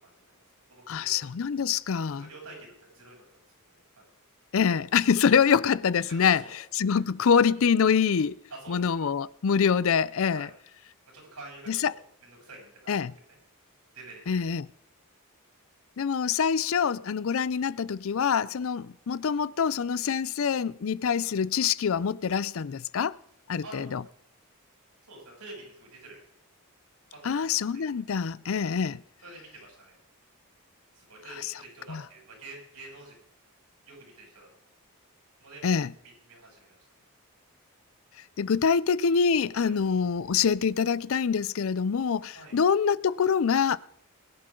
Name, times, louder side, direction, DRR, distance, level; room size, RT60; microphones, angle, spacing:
voice 1, 0.0-1.2 2.0-3.5 4.0-4.1 6.1-6.6 6.8-7.0 8.5-8.8 10.3-10.5 11.1-13.0 13.3-13.4 13.9-14.2 23.6-23.9 25.0-26.2 27.1-27.3 27.7-27.9 29.2-30.0 30.9-33.2 33.8-34.5 35.4-35.6 36.0-36.8 39.5-39.7 42.3-42.6, right 2 dB, 85° right, 7.9 m, -48 dB
voice 2, 0.9-2.3 4.5-6.4 6.8-8.4 8.7-10.5 11.7-11.9 12.9-13.1 14.3-14.7 16.0-23.2 23.5-24.0 27.2-29.0 31.9-32.0 35.6-35.9 38.4-43.8, left 6 dB, 60° left, 0.5 m, -25 dB
22.0 x 11.5 x 3.8 m
head